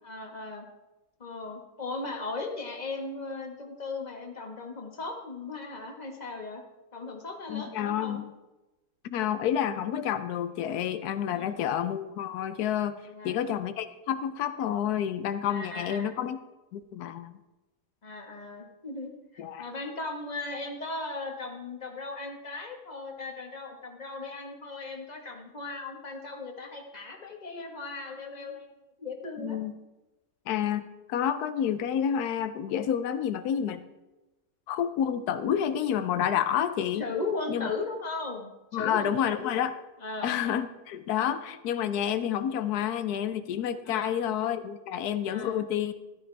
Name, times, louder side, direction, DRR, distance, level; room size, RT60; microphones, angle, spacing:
voice 1, 0.0-0.7 1.2-6.6 6.9-8.2 11.3-11.6 13.1-13.4 15.5-16.2 18.0-28.7 29.0-29.6 37.0-39.5 40.0-40.4 43.8-44.1 45.2-45.6, left 3 dB, 30° left, 2 dB, 1.6 m, -37 dB
voice 2, 7.5-8.3 9.0-16.4 16.7-17.3 19.4-19.7 29.4-29.7 30.5-33.8 34.7-37.0 37.5-37.7 38.7-39.7 40.2-45.9, left 9 dB, 90° left, 11 dB, 1.2 m, -29 dB
14.0 x 12.5 x 3.4 m, 1.0 s
omnidirectional pair, 1.6 m